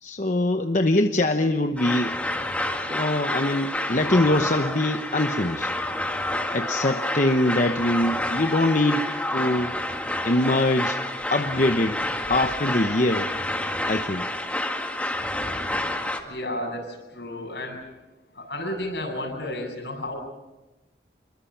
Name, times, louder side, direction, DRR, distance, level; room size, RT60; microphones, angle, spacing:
voice 1, 0.0-2.2 2.9-5.7 6.5-9.0 9.3-9.8 10.2-11.0 11.3-12.0 12.3-13.3 13.9-14.2, left 1 dB, 45° left, 6 dB, 0.9 m, -23 dB
sound 1, 1.8-16.2, left 1 dB, 10° left, 1.9 m, -29 dB
voice 2, 16.3-17.8 18.3-20.1, left 1 dB, 75° left, 1 dB, 7.9 m, -32 dB
27.5 x 23.0 x 5.9 m, 1.1 s
head